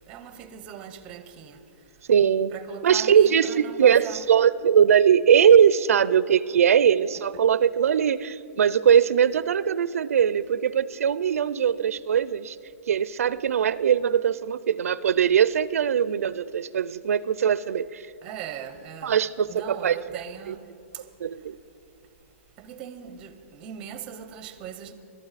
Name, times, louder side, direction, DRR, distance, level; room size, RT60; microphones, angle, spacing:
voice 1, 0.0-1.6 2.5-4.2 18.2-19.2 19.5-20.6 20.9-21.1 22.6-24.9, right 9 dB, 15° right, 0.6 m, -40 dB
voice 2, 2.1-2.5 2.8-12.6 12.9-18.1 19.0-20.0 20.5-20.6 21.2-21.6, right 8 dB, 85° right, 0.5 m, -21 dB
22.0 x 12.0 x 4.1 m
hypercardioid pair, 180°, 8 cm